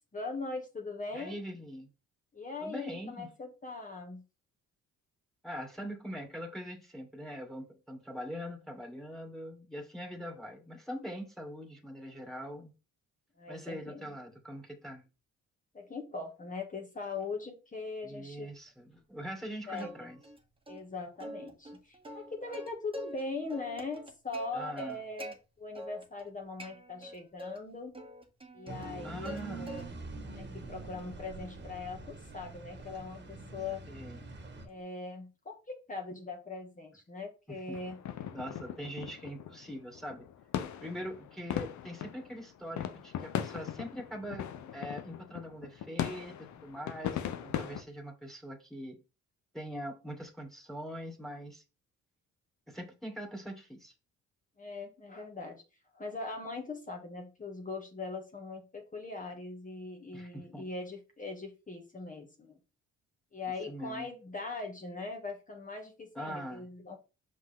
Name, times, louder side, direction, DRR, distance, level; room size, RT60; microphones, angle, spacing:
voice 1, 0.1-1.4 2.3-4.2 13.4-14.2 15.7-18.6 19.7-20.1 20.7-27.9 28.5-29.9 30.3-33.8 34.6-35.6 35.9-38.0 54.6-55.6 55.9-62.6 63.3-67.0, left 3 dB, 25° left, 2 dB, 1.9 m, -41 dB
voice 2, 1.1-1.9 2.6-3.3 5.4-12.7 13.5-15.1 18.0-20.2 24.5-25.0 29.0-29.8 33.9-34.2 37.5-37.8 38.3-40.3 40.8-49.0 49.5-51.6 52.7-53.9 60.1-60.6 63.7-64.1 66.1-66.7, equal, ahead, 1 dB, 2.3 m, -42 dB
Plucked string instrument, 19.7-20.4 20.7-20.8 21.2-23.2 23.5-25.3 25.7-26.3 26.6-27.6 27.9-29.4 29.7-30.2 30.6-34.8, right 1 dB, 20° right, 1.6 m, -46 dB
sound 1, 28.7-34.7, right 3 dB, 35° right, 1.8 m, -45 dB
sound 2, 37.7-47.8, left 10 dB, 70° left, 0.9 m, -39 dB
5.9 x 5.1 x 3.7 m, 0.30 s
cardioid pair, 90°, 30 cm